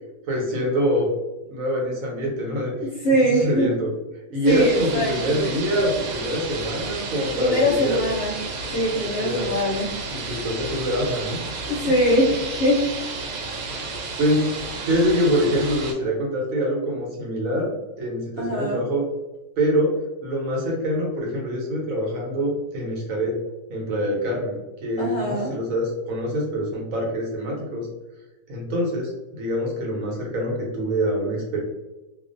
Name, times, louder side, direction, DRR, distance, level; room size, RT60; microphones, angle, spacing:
voice 1, 0.3-1.1 1.5-2.7 3.3-3.9 4.3-8.0 9.2-9.5 10.1-11.4 12.0-12.2 13.6-13.9 14.2-17.7 18.0-19.1 19.6-23.4 23.7-27.9 28.5-31.6, equal, 65° right, -2 dB, 1.1 m, -25 dB
voice 2, 2.8-3.7 4.5-5.5 7.3-8.3 8.7-9.9 11.7-12.8 18.4-18.8 25.0-25.5, equal, 60° left, -4 dB, 0.8 m, -22 dB
sound 1, 4.5-15.9, right 3 dB, 90° right, 1.1 m, -32 dB
2.4 x 2.4 x 2.4 m, 1.0 s
omnidirectional pair, 1.7 m